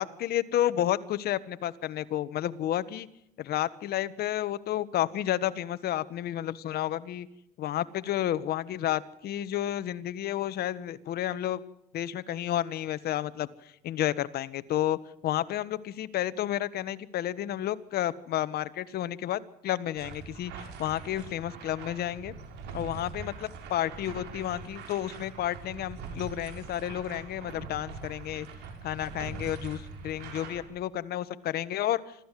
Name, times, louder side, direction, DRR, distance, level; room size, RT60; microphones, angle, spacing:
voice 1, 0.0-3.1 3.4-7.3 7.6-11.6 11.9-13.5 13.8-15.0 15.2-22.3 22.7-28.5 28.8-32.0, left 12 dB, 70° left, 14 dB, 1.4 m, -31 dB
sound 1, 19.9-30.6, right 4 dB, 90° right, 5.9 m, -43 dB
26.0 x 14.5 x 7.6 m, 0.81 s
cardioid pair, 110°, 17 cm